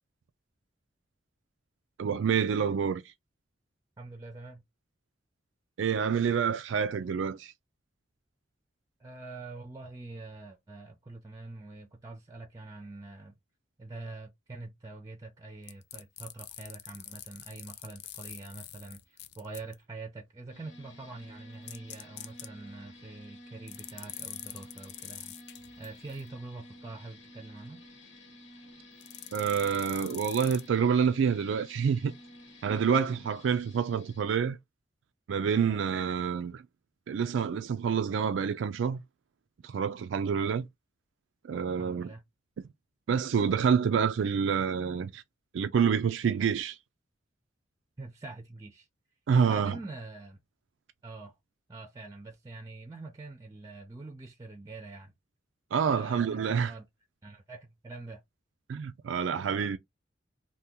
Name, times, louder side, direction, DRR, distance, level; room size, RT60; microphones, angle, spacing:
voice 1, 2.0-3.0 5.8-7.5 29.3-32.1 32.6-34.6 35.3-36.6 37.1-39.0 39.6-40.7 41.5-42.1 43.1-45.2 45.5-46.8 49.3-49.8 55.7-56.7 58.7-59.8, right 6 dB, 80° right, 0.4 m, -27 dB
voice 2, 4.0-4.6 9.0-13.4 13.8-25.4 25.8-27.8 35.7-35.8 41.8-42.2 48.0-48.9 49.4-50.4 51.0-51.4 51.7-55.1 55.9-56.8 57.2-58.2, right 2 dB, 20° right, 0.5 m, -45 dB
sound 1, 15.7-19.7 21.7-22.5 23.7-26.2 29.0-30.7, left 12 dB, 60° left, 0.4 m, -44 dB
sound 2, 20.5-34.2, left 1 dB, 90° left, 1.1 m, -52 dB
2.8 x 2.3 x 3.5 m
head